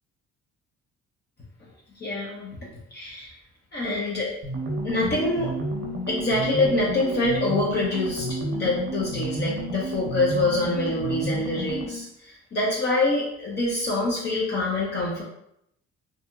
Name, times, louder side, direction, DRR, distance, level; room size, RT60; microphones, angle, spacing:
voice 1, 2.0-2.5 2.9-3.3 3.7-4.3 4.8-5.5 6.1-15.2, left 2 dB, 35° left, -6 dB, 0.7 m, -25 dB
sound 1, 4.4-12.1, right 1 dB, 45° right, 0.7 m, -31 dB
2.7 x 2.7 x 2.3 m, 0.78 s
cardioid pair, 105°, 29 cm